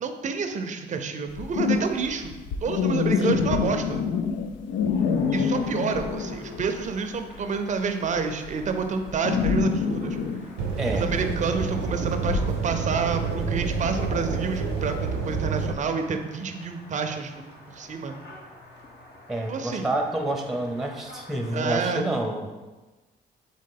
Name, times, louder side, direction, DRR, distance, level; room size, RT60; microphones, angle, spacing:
voice 1, 0.0-2.3 2.6-4.0 5.3-10.2 10.9-18.2 19.5-19.9 21.5-22.1, right 5 dB, 40° right, 6 dB, 0.5 m, -28 dB
sound 1, 1.3-6.9 7.1-15.0, left 6 dB, 85° left, 0.4 m, -27 dB
voice 2, 3.2-3.5 10.8-11.1 19.3-22.5, right 1 dB, ahead, 3 dB, 0.6 m, -28 dB
sound 2, 5.0-22.0, left 1 dB, 60° left, 1.0 m, -49 dB
sound 3, 10.6-15.8, right 5 dB, 85° right, 0.6 m, -28 dB
3.7 x 3.6 x 3.8 m, 1.2 s
supercardioid pair, 70°, 19 cm